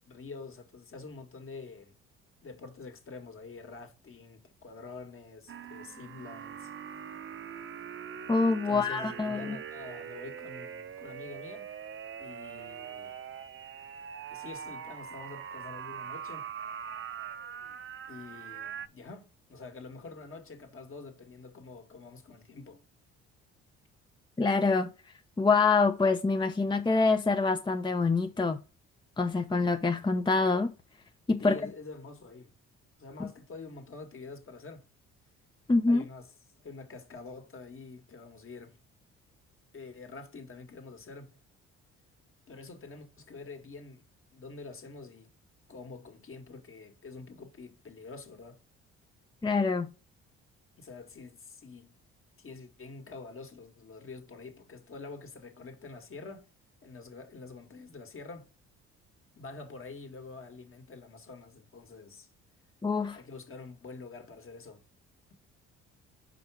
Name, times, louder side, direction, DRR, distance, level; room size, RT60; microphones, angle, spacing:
voice 1, 0.0-1.9 2.4-6.7 8.6-11.7 12.2-13.1 14.3-16.5 18.1-22.8 31.4-32.5 33.0-34.8 35.9-36.3 36.6-38.8 39.7-41.4 42.5-44.0 44.3-45.3 45.7-48.6 50.8-52.0 52.4-56.5 56.8-58.5 59.4-62.3 63.1-64.8, left 3 dB, 45° left, 1.9 m, -46 dB
sound 1, 5.5-18.9, right 8 dB, 40° right, 0.8 m, -42 dB
voice 2, 8.3-9.6 24.4-24.9 25.4-28.6 29.2-30.7 31.3-31.6 33.2-33.3 35.7-36.0 49.4-49.9 62.8-63.2, left 3 dB, 15° left, 0.7 m, -25 dB
5.1 x 4.7 x 4.9 m
supercardioid pair, 65°, 30 cm